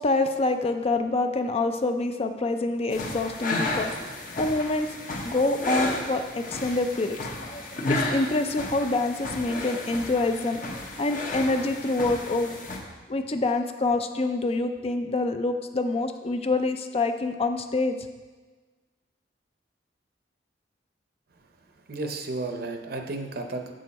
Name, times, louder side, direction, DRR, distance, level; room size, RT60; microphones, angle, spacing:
voice 1, 0.0-5.0 5.2-12.6 13.1-18.0, left 2 dB, 35° left, 7 dB, 0.5 m, -26 dB
sound 1, 2.9-12.8, left 2 dB, 50° left, 1.1 m, -33 dB
voice 2, 21.9-23.7, right 2 dB, 60° right, 5 dB, 0.7 m, -33 dB
7.8 x 6.5 x 4.1 m, 1.3 s
head